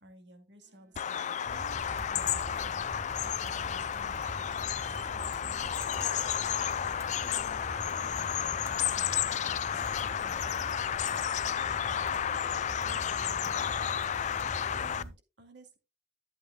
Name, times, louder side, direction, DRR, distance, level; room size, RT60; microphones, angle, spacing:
voice 1, 0.0-2.9 3.2-7.6 8.0-10.7 12.3-13.7 14.7-15.8, right 1 dB, 80° right, 5 dB, 2.2 m, -55 dB
sound 1, 0.6-13.4, right 1 dB, 60° right, 4.3 m, -64 dB
Bird vocalization bird call bird song, 0.9-15.0, left 9 dB, 45° left, 0.4 m, -32 dB
sound 2, 1.5-15.1, right 1 dB, 15° right, 1.9 m, -44 dB
11.5 x 8.6 x 2.2 m, 0.25 s
head